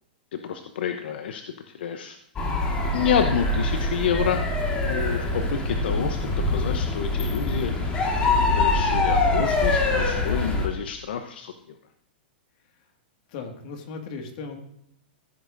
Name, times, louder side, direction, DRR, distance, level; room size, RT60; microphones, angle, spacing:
voice 1, 0.3-1.4 1.7-2.2 2.9-4.4 4.8-7.7 8.5-11.5, left 8 dB, 75° left, 7 dB, 0.7 m, -28 dB
sound 1, 2.4-10.7, left 2 dB, 20° left, 1.7 m, -24 dB
voice 2, 13.3-14.6, left 4 dB, 50° left, 4 dB, 1.8 m, -36 dB
15.0 x 8.2 x 2.6 m, 0.71 s
hypercardioid pair, 145°, 6 cm